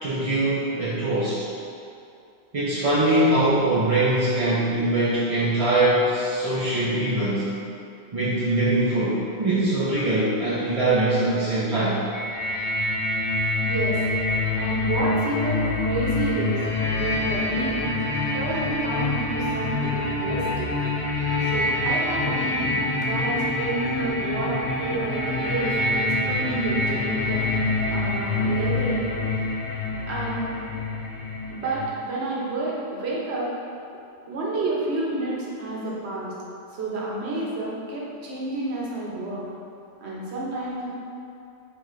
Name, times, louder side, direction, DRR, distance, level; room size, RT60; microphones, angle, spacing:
voice 1, 0.0-1.4 2.5-7.4 8.1-12.0, right 1 dB, 40° right, -10 dB, 0.5 m, -22 dB
sound 1, 12.1-31.9, left 2 dB, 55° left, 0.4 m, -26 dB
voice 2, 13.6-14.0 14.6-16.6 16.9-17.9 18.3-20.7 21.4-22.8 23.1-27.6 27.9-29.1 30.1-30.5 31.5-33.5 34.3-36.3 36.7-39.4 40.0-40.9, right 2 dB, 75° right, -5 dB, 1.0 m, -29 dB
3.7 x 3.2 x 3.1 m, 2.6 s
omnidirectional pair, 1.1 m